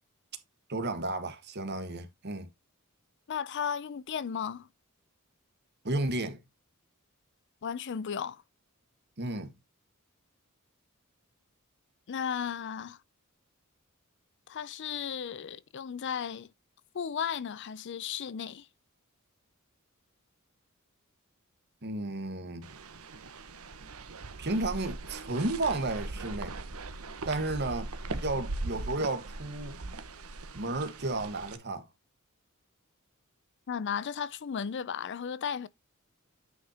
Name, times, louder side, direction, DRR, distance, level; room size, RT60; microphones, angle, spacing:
voice 1, 0.7-2.5 5.8-6.4 9.2-9.5 21.8-22.6 24.4-26.5 27.3-29.8 30.5-31.8, right 2 dB, 50° right, 1.5 m, -33 dB
voice 2, 3.3-4.7 7.6-8.4 12.1-13.0 14.5-16.5 16.9-18.7 33.7-35.7, left 7 dB, 55° left, 0.4 m, -35 dB
sound 1, 22.6-31.6, right 2 dB, 85° right, 1.1 m, -40 dB
9.5 x 5.5 x 2.9 m
head